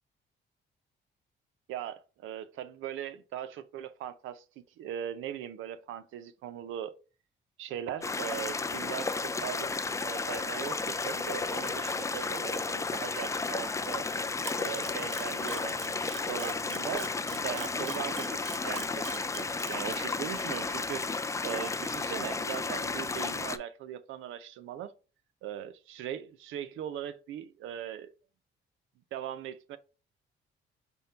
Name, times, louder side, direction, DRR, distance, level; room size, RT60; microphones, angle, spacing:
voice 1, 1.7-4.4 4.8-6.9 7.6-14.1 14.6-21.0 21.4-24.9 25.4-28.1 29.1-29.8, right 10 dB, 85° right, 0.5 m, -40 dB
sound 1, 8.0-23.6, left 4 dB, 15° left, 0.4 m, -33 dB
Camera, 14.4-19.9, right 8 dB, 70° right, 0.9 m, -42 dB
5.3 x 2.2 x 4.3 m
cardioid pair, 90°, 20 cm